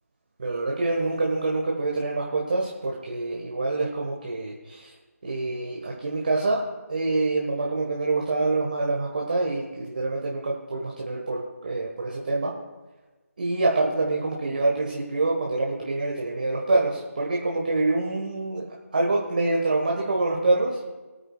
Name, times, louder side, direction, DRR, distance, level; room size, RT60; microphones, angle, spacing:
voice 1, 0.4-4.9 5.2-6.6 6.9-12.5 13.4-20.8, right 2 dB, 35° right, -2 dB, 1.6 m, -26 dB
22.5 x 9.8 x 2.4 m, 1.2 s
figure-of-eight pair, 165°, 9 cm